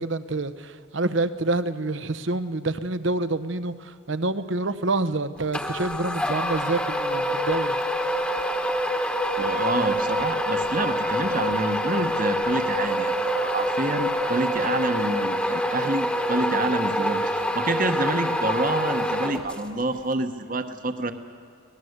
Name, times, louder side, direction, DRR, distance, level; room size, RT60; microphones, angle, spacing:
voice 1, 0.0-7.8, right 2 dB, 70° right, 13 dB, 1.0 m, -27 dB
sound 1, 5.5-19.8, equal, 5° left, 1.2 m, -26 dB
voice 2, 9.4-21.1, right 2 dB, 40° right, 8 dB, 1.2 m, -28 dB
24.0 x 19.0 x 8.1 m, 2.5 s
head